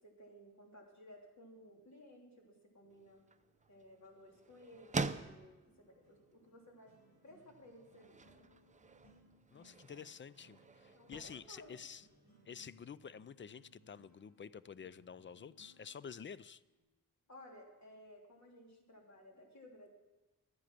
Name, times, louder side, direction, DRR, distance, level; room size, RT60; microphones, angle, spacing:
voice 1, 0.0-3.2 3.7-6.9 7.2-8.4 10.9-11.8 17.3-19.9, left 1 dB, 55° left, -1 dB, 3.1 m, -58 dB
sound 1, 2.8-16.8, right 1 dB, 80° left, 5.5 m, -69 dB
sound 2, 2.9-12.7, right 3 dB, 20° right, 0.6 m, -47 dB
voice 2, 9.5-12.1 12.4-16.6, left 7 dB, 35° left, 18 dB, 0.4 m, -50 dB
12.5 x 10.0 x 6.0 m, 1.1 s
cardioid pair, 65°, 33 cm